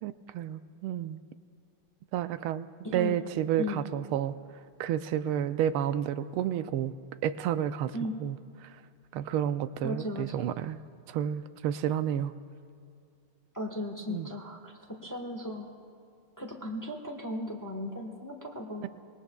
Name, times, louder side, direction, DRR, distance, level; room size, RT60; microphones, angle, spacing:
voice 1, 0.0-1.2 2.1-2.7 2.9-4.4 4.8-6.9 7.2-7.9 8.2-8.4 8.6-8.7 9.1-10.8 11.1-12.3 14.1-14.3 18.8-18.9, right 10 dB, 85° right, 12 dB, 1.5 m, -30 dB
voice 2, 2.8-3.2 3.6-3.8 7.9-8.1 9.8-10.3 13.5-14.7 15.0-15.7 16.4-18.9, left 1 dB, 10° left, 2 dB, 1.0 m, -36 dB
25.5 x 20.5 x 2.3 m, 2.4 s
omnidirectional pair, 2.3 m